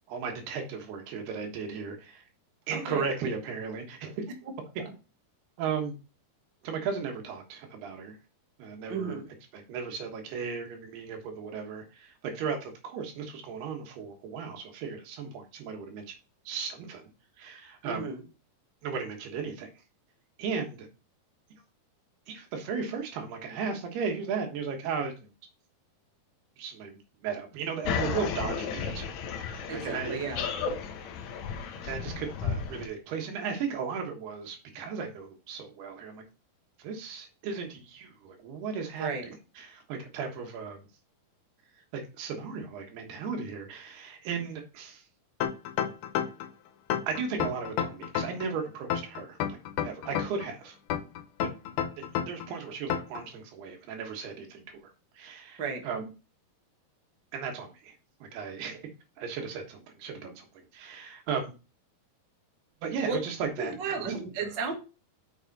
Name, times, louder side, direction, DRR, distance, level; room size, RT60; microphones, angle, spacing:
voice 1, 0.1-2.2 2.7-4.2 5.6-6.0 6.6-8.2 8.6-9.2 9.5-16.1 16.5-17.1 17.4-18.1 18.8-19.7 20.4-20.9 22.3-25.3 26.6-30.2 31.8-36.2 36.8-40.8 41.9-45.0 47.1-49.6 49.8-50.8 51.4-51.5 52.3-56.1 57.3-57.9 58.2-58.8 59.2-61.5 62.8-64.1 64.4-64.5, right 5 dB, 75° right, 3 dB, 3.4 m, -36 dB
voice 2, 2.7-3.1 8.9-9.2 17.8-18.2 29.7-30.4 39.0-39.3 55.6-55.8 63.0-63.2 63.6-64.7, right 5 dB, 50° right, 2 dB, 1.3 m, -33 dB
sound 1, 27.8-32.9, left 6 dB, 90° left, 1.6 m, -33 dB
sound 2, 45.4-46.5 46.9-48.5 48.9-50.5 50.9-52.5 52.9-53.2, left 9 dB, 70° left, 2.6 m, -30 dB
7.1 x 6.3 x 4.1 m, 0.31 s
omnidirectional pair, 4.7 m